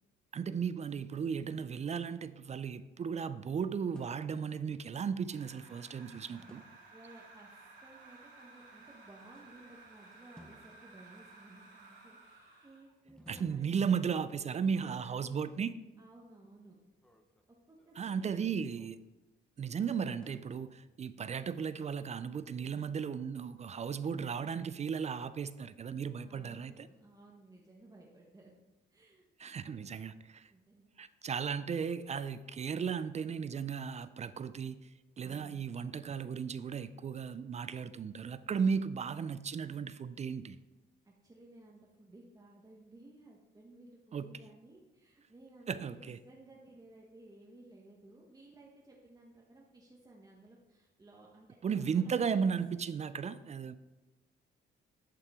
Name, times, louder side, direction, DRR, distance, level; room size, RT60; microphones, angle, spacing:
voice 1, 0.3-6.6 13.3-15.7 18.0-19.0 19.6-26.9 29.4-30.5 31.0-34.9 35.2-40.6 44.1-44.3 45.7-46.2 51.6-53.8, right 6 dB, 35° right, 0.4 m, -35 dB
sound 1, 1.6-3.3 3.9-4.6 6.2-7.1 9.1-9.9 10.4-11.4 13.1-14.5 16.8-19.4 20.2-21.2, equal, 5° left, 0.8 m, -61 dB
sound 2, 5.3-12.9, right 3 dB, 70° right, 2.8 m, -56 dB
voice 2, 6.9-13.7 14.5-15.5 16.0-16.8 17.5-18.6 26.2-28.5 28.9-29.8 30.5-30.9 35.2-35.6 38.7-39.0 41.0-51.5 51.8-52.3, right 2 dB, 20° right, 1.2 m, -57 dB
11.0 x 5.6 x 3.6 m
cardioid pair, 90°, 20 cm